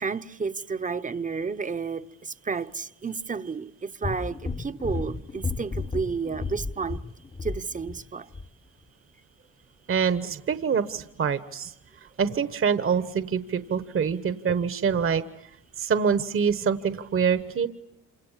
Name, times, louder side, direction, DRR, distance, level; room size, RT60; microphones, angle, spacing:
voice 1, 0.0-7.0 7.4-8.3, right 5 dB, 25° right, 0.9 m, -31 dB
sound 1, 4.0-8.0 8.3-8.5, left 4 dB, 20° left, 0.9 m, -33 dB
voice 2, 9.9-11.7 12.2-15.2 15.8-17.7, right 6 dB, 45° right, 1.2 m, -25 dB
28.0 x 26.5 x 7.4 m
cardioid pair, 90°, 30 cm